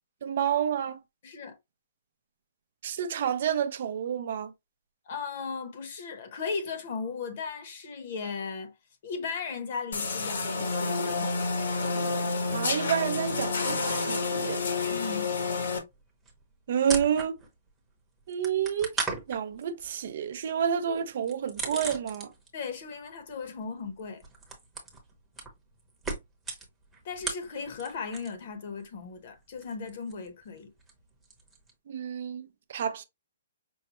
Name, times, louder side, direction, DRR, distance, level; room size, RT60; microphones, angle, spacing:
voice 1, 0.2-1.0 2.8-4.5 12.5-14.6 16.7-17.4 18.3-18.9 19.3-22.3 31.9-33.0, right 8 dB, 50° right, 0.5 m, -29 dB
voice 2, 1.2-1.6 5.1-8.7 9.0-11.5 14.9-15.4 22.5-24.2 27.0-30.7, left 5 dB, 40° left, 0.9 m, -37 dB
sound 1, 9.9-15.8, left 3 dB, 75° left, 1.3 m, -29 dB
sound 2, 14.6-14.7 14.9-17.7 18.0-22.7 22.9-28.5 28.7-31.7, right 3 dB, 5° right, 0.9 m, -39 dB
5.4 x 2.2 x 2.9 m
hypercardioid pair, 170°, 0 cm